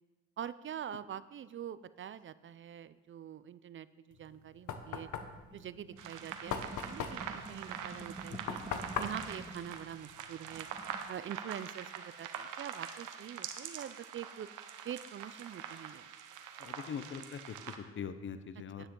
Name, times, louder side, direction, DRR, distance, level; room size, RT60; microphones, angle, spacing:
voice 1, 0.4-5.1 5.5-8.6 9.0-10.7 11.1-14.5 14.8-16.1 18.8-18.9, right 9 dB, 40° right, 15 dB, 0.4 m, -44 dB
Knock, 4.1-10.6, left 7 dB, 75° left, 0.9 m, -41 dB
sound 1, 5.2-9.7 10.1-10.2 10.4-11.0, right 2 dB, 15° right, 1.8 m, -48 dB
sound 2, 6.0-17.8, right 8 dB, 85° right, 0.9 m, -45 dB
voice 2, 16.6-18.9, left 7 dB, 40° left, 11 dB, 0.7 m, -42 dB
9.9 x 9.6 x 3.8 m, 1.3 s
cardioid pair, 90°, 30 cm